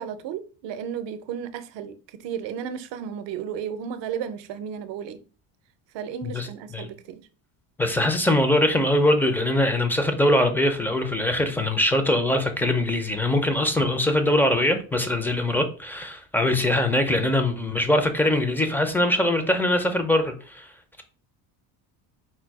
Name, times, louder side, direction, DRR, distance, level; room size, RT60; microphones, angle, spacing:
voice 1, 0.0-5.2 5.9-7.2, right 8 dB, 60° right, 0.7 m, -34 dB
voice 2, 7.8-20.7, left 1 dB, 5° left, 0.4 m, -22 dB
4.3 x 2.3 x 4.6 m
cardioid pair, 135°, 48 cm